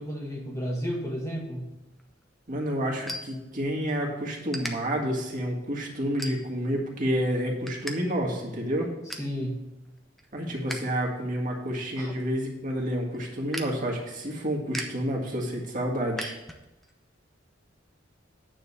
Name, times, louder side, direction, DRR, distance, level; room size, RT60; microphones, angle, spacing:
voice 1, 0.0-1.7 9.2-9.6 12.0-12.1, equal, 15° left, -1 dB, 1.4 m, -32 dB
sound 1, 1.9-4.0 4.5-4.7 5.3-5.5 6.2-6.7 7.1-8.0 8.2-8.3 8.7-9.3 9.8-10.9 11.2-16.9, equal, ahead, 0.7 m, -40 dB
voice 2, 2.5-8.9 10.3-16.4, equal, 45° right, -1 dB, 1.7 m, -29 dB
9.3 x 3.9 x 6.9 m, 1.0 s
head